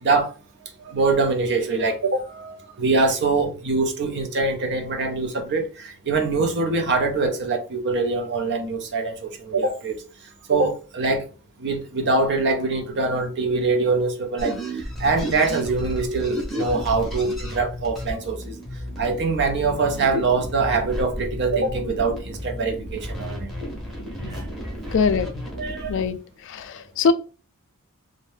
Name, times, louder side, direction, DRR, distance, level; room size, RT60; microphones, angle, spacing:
voice 1, 0.0-0.3 0.8-10.0 10.5-11.2 11.6-18.6 19.0-23.5 24.3-24.4 25.6-25.9, right 3 dB, 55° right, 0.5 m, -23 dB
sound 1, 14.4-26.1, equal, ahead, 0.7 m, -32 dB
voice 2, 24.9-25.3 25.9-26.2 26.5-27.1, left 5 dB, 60° left, 0.3 m, -21 dB
2.6 x 2.1 x 3.2 m
head